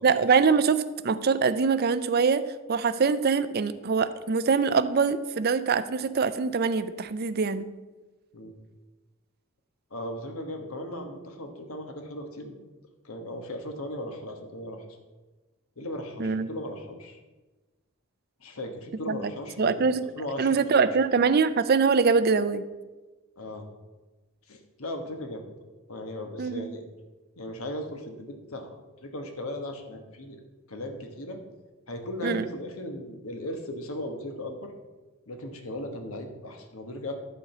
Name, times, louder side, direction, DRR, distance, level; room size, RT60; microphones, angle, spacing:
voice 1, 0.0-7.7 16.2-16.5 19.1-19.3 19.6-20.0 20.4-22.6 26.4-26.7 32.2-32.4, right 5 dB, 45° right, 13 dB, 0.5 m, -24 dB
voice 2, 9.9-12.6 13.0-14.8 15.8-17.2 18.4-20.9 23.4-23.6 24.5-25.5 25.9-26.8 27.4-28.7 29.0-30.4 30.7-31.4 31.9-34.7 35.3-37.1, left 1 dB, 85° left, 5 dB, 1.3 m, -37 dB
11.0 x 4.5 x 6.7 m, 1.2 s
head